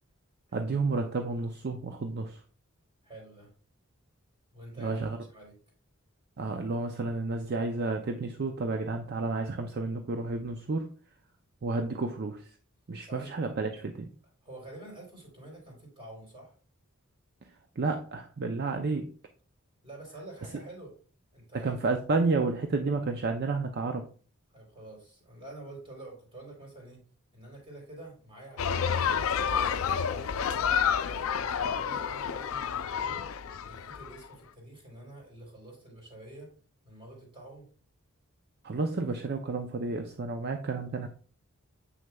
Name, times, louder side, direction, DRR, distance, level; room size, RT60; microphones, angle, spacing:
voice 1, 0.5-2.4 4.8-5.2 6.4-10.9 11.6-12.5 12.9-14.1 17.8-19.1 21.6-24.1 38.6-41.1, right 3 dB, 50° right, 5 dB, 0.5 m, -31 dB
voice 2, 3.0-3.5 4.5-5.5 13.0-13.3 14.4-16.6 19.8-20.9 21.3-21.7 24.5-27.1 27.3-29.2 29.6-30.8 31.5-33.2 33.6-36.5 36.8-37.7, right 1 dB, 25° right, -2 dB, 3.5 m, -48 dB
sound 1, 28.6-34.1, left 7 dB, 80° left, 0.4 m, -29 dB
7.8 x 6.3 x 2.3 m, 0.40 s
head